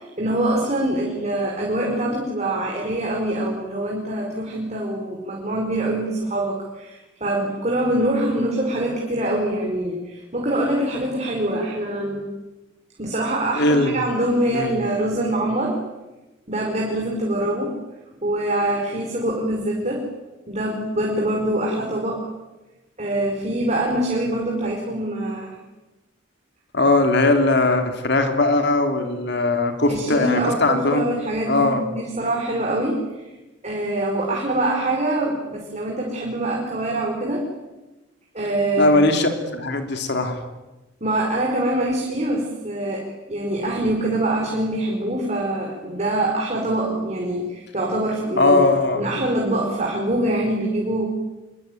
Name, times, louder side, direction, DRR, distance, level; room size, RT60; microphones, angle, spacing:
voice 1, 0.0-12.2 13.0-15.8 16.5-17.8 18.2-20.1 20.5-22.3 23.0-25.6 29.9-33.3 33.6-37.4 38.3-38.9 41.0-48.6 48.9-51.1, right 1 dB, 35° right, -1 dB, 5.1 m, -24 dB
voice 2, 13.5-14.0 14.5-14.7 26.7-31.1 31.5-31.8 38.8-40.4 48.4-49.1, left 2 dB, 60° left, 6 dB, 3.2 m, -19 dB
26.0 x 23.5 x 9.3 m, 1.1 s
head